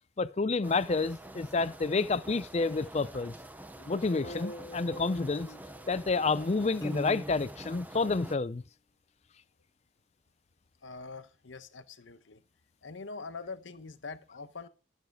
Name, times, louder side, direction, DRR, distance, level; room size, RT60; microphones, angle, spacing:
voice 1, 0.2-3.3 3.9-5.5 5.9-8.6, left 3 dB, 35° left, 0.4 m, -29 dB
sound 1, 0.6-8.4, right 1 dB, 10° right, 0.6 m, -47 dB
sound 2, 3.8-6.3, equal, 50° left, 1.3 m, -45 dB
Piano, 6.8-7.8, left 1 dB, 20° left, 1.3 m, -38 dB
voice 2, 10.8-12.4 12.8-14.7, left 4 dB, 75° left, 0.9 m, -44 dB
13.0 x 6.5 x 4.7 m
head